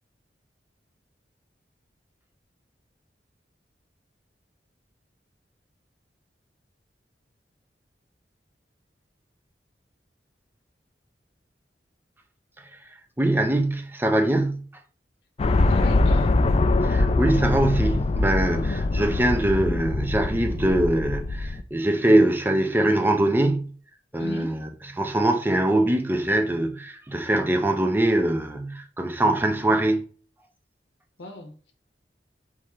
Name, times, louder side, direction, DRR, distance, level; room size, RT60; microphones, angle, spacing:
voice 1, 13.2-14.7 16.8-23.7 24.1-24.7 25.0-30.0, right 1 dB, 10° right, 0.6 m, -22 dB
sound 1, 15.4-21.6, left 2 dB, 35° left, 0.3 m, -23 dB
voice 2, 15.7-16.3 24.2-24.7 31.2-31.7, left 2 dB, 80° left, 0.8 m, -37 dB
3.6 x 3.2 x 4.2 m
head